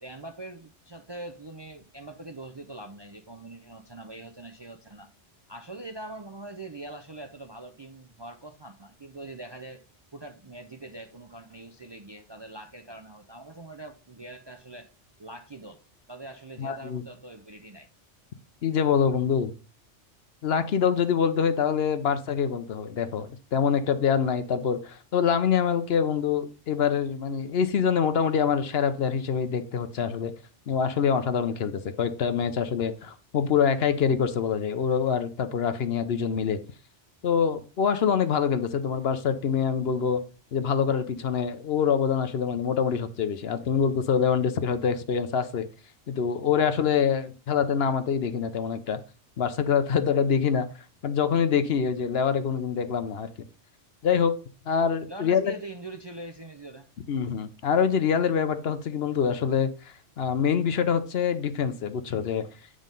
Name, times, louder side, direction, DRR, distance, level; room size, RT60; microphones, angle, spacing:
voice 1, 0.0-5.1 5.5-9.8 10.1-14.9 15.2-15.8 16.1-17.9 55.1-56.9, right 2 dB, 30° right, 0.5 m, -43 dB
voice 2, 16.6-17.0 18.6-19.5 20.4-30.3 30.7-36.6 37.2-40.2 40.5-45.7 46.1-49.0 49.4-50.7 51.0-53.3 54.0-54.3 54.7-55.5 57.1-62.5, left 7 dB, 65° left, 0.9 m, -25 dB
9.3 x 3.8 x 5.2 m
omnidirectional pair, 1.2 m